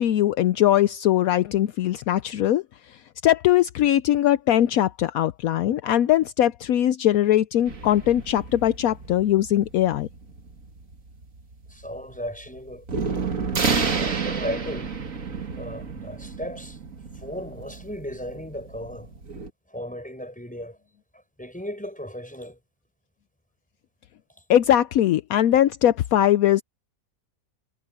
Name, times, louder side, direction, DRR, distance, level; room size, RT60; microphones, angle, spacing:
voice 1, 0.0-2.6 2.9-10.1 24.5-26.6, left 12 dB, 75° left, 1.0 m, -21 dB
sound 1, 7.7-19.5, right 5 dB, 60° right, 2.4 m, -31 dB
voice 2, 11.7-12.9 14.0-15.0 15.6-16.8 17.2-19.1 19.7-20.8 21.4-22.6, equal, 5° left, 7.5 m, -35 dB
omnidirectional pair, 1.6 m